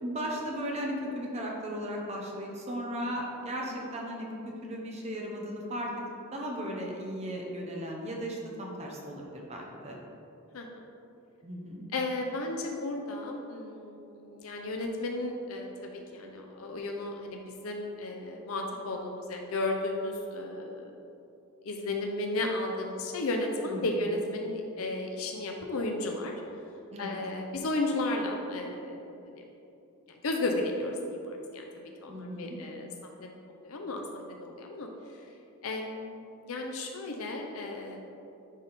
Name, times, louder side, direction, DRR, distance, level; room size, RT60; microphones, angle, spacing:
voice 1, 0.0-4.4 4.6-6.1 6.3-10.0 11.4-11.8 23.6-24.0 26.9-27.2 32.1-32.6, equal, 30° right, -1 dB, 0.8 m, -36 dB
voice 2, 10.5-10.9 11.9-21.0 21.6-26.3 27.0-29.4 30.1-31.7 32.0-32.9 33.2-34.9 35.6-38.0, left 2 dB, 70° left, 2 dB, 0.6 m, -34 dB
10.0 x 3.5 x 4.1 m, 2.7 s
head